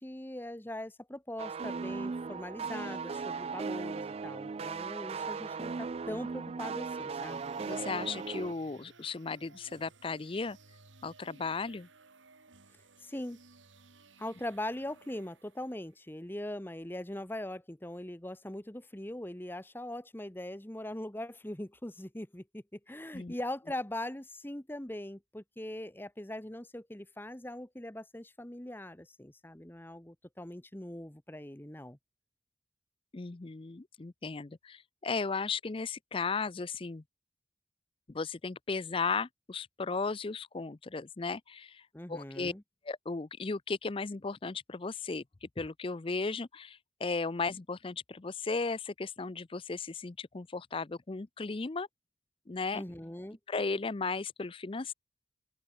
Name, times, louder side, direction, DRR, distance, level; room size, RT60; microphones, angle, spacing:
voice 1, 0.0-7.4 13.0-13.4 14.2-32.0 41.9-42.6 52.7-53.4, left 1 dB, 10° left, 1.1 m, -41 dB
sound 1, 1.4-8.5, right 5 dB, 30° right, 0.3 m, -37 dB
sound 2, 7.1-16.0, right 3 dB, 90° right, 3.9 m, -59 dB
voice 2, 7.6-10.6 11.0-11.9 23.1-23.4 33.1-37.0 38.1-42.5 42.8-51.9 52.5-52.8 53.5-54.9, left 4 dB, 30° left, 0.5 m, -36 dB
open air
head